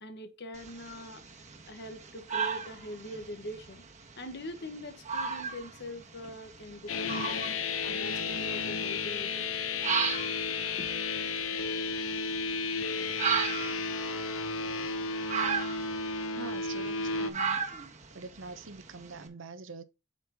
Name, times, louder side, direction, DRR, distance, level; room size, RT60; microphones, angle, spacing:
voice 1, 0.0-1.2 1.7-3.8 4.2-7.4 7.8-9.5 10.8-10.9, left 1 dB, 60° left, 1.4 m, -43 dB
sound 1, 0.5-19.2, right 6 dB, 35° right, 1.4 m, -37 dB
sound 2, 6.9-17.3, left 4 dB, 80° left, 0.9 m, -33 dB
voice 2, 16.3-17.7 18.1-19.8, right 4 dB, 70° right, 0.9 m, -44 dB
8.3 x 5.6 x 2.9 m
head